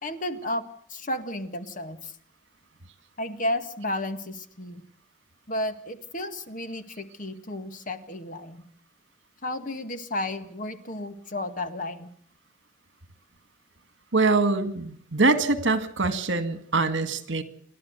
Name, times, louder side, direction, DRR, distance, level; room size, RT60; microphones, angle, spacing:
voice 1, 0.0-2.1 3.2-4.8 5.5-8.6 9.4-12.1, left 1 dB, 45° left, 9 dB, 1.7 m, -32 dB
voice 2, 14.1-17.4, right 3 dB, 70° right, 10 dB, 2.0 m, -24 dB
28.5 x 11.5 x 8.0 m, 0.63 s
head